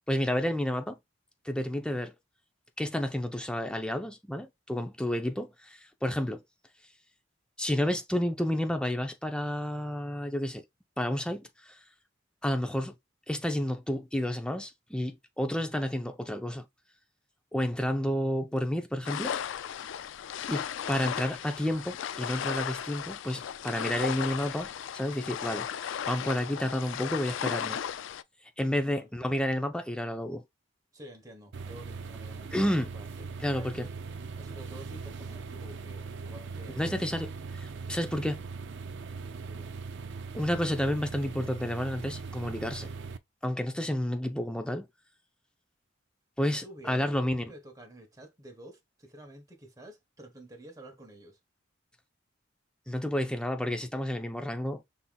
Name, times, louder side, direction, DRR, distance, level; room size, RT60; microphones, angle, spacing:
voice 1, 0.1-1.0 1.4-2.2 2.8-6.4 7.6-10.6 11.0-11.8 12.4-12.9 13.3-16.7 17.5-19.3 20.5-27.8 28.6-30.4 32.5-32.9 33.4-33.9 36.8-37.3 37.6-38.4 40.3-42.9 43.4-44.9 46.4-47.5 52.9-54.8, left 1 dB, 5° left, 0.6 m, -31 dB
sound 1, 19.0-28.2, left 9 dB, 70° left, 0.3 m, -35 dB
voice 2, 30.9-33.9 34.4-37.3 39.5-39.7 46.4-51.4, right 1 dB, 20° right, 1.1 m, -50 dB
sound 2, 31.5-43.2, right 4 dB, 65° right, 0.5 m, -40 dB
5.7 x 3.6 x 2.3 m
head